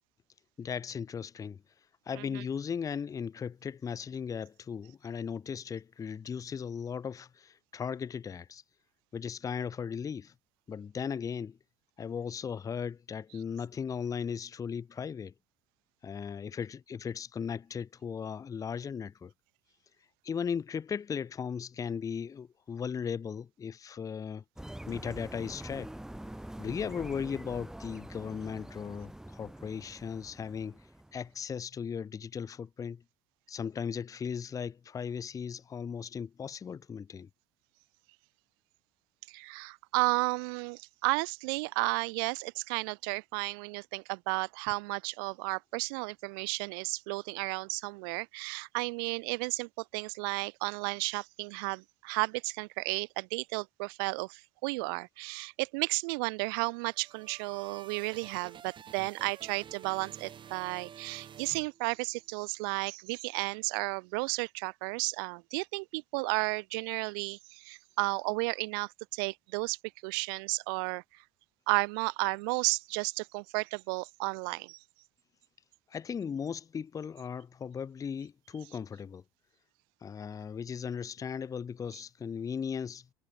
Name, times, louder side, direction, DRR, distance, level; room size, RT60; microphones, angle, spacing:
voice 1, 0.6-1.6 2.1-8.6 9.1-10.3 10.7-11.6 12.0-15.3 16.0-19.3 20.2-24.4 24.9-25.9 26.6-30.8 31.1-33.0 33.5-37.3 75.9-79.2 80.0-83.1, left 7 dB, 25° left, 0.7 m, -37 dB
sound 1, 24.6-31.3, right 1 dB, 5° right, 1.3 m, -45 dB
voice 2, 39.3-69.8 70.0-71.0 71.7-74.8, right 31 dB, 60° right, 0.6 m, -33 dB
sound 2, 56.7-62.3, right 8 dB, 40° right, 5.0 m, -50 dB
figure-of-eight pair, 65°, 13 cm